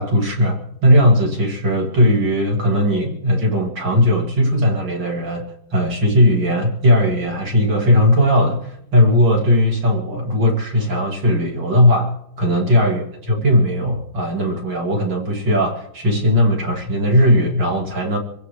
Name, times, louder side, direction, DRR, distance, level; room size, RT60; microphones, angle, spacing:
voice 1, 0.0-5.5 5.7-13.0 13.4-18.2, equal, 35° right, 0 dB, 3.0 m, -17 dB
26.5 x 16.0 x 3.3 m, 0.73 s
omnidirectional pair, 3.8 m